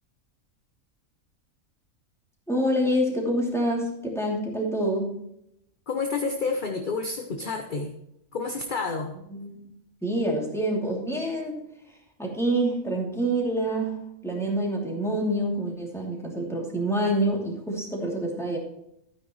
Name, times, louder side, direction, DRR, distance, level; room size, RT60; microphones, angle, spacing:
voice 1, 2.5-5.1 9.3-9.6 10.0-11.6 12.2-18.6, right 1 dB, ahead, -2 dB, 2.8 m, -27 dB
voice 2, 5.9-8.0 8.3-9.1, left 4 dB, 40° left, 4 dB, 0.9 m, -29 dB
12.5 x 9.5 x 3.1 m, 0.80 s
omnidirectional pair, 1.4 m